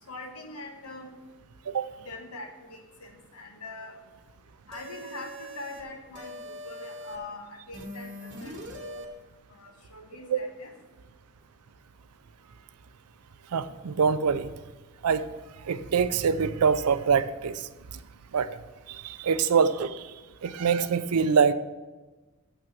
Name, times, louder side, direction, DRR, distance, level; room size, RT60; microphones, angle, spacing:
voice 1, 0.1-1.1 2.0-4.0 4.7-9.0 9.5-10.7, left 2 dB, 85° left, 4 dB, 1.2 m, -43 dB
sound 1, 4.7-5.8 6.1-7.2 7.7-9.1, equal, 50° right, 1.2 m, -42 dB
voice 2, 13.5-14.5 15.0-15.3 15.6-18.0 18.3-18.5 18.9-20.1 20.4-21.5, right 6 dB, 85° right, 13 dB, 0.5 m, -25 dB
7.1 x 6.3 x 5.9 m, 1.2 s
head